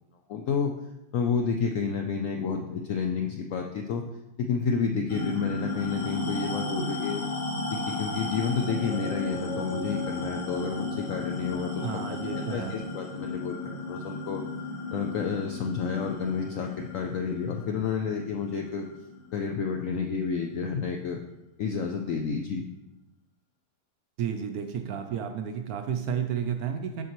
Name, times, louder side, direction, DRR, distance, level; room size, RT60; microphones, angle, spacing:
voice 1, 0.3-0.7 1.1-4.0 4.4-7.2 7.9-12.2 12.5-13.6 13.9-14.4 14.9-18.8 19.3-21.2 21.6-22.6, left 5 dB, 75° left, 3 dB, 0.7 m, -30 dB
sound 1, 5.1-19.9, left 2 dB, 30° left, 0.7 m, -34 dB
voice 2, 11.8-12.7 24.2-27.0, right 8 dB, 70° right, 5 dB, 0.9 m, -32 dB
7.1 x 6.2 x 3.0 m, 0.96 s
omnidirectional pair, 1.9 m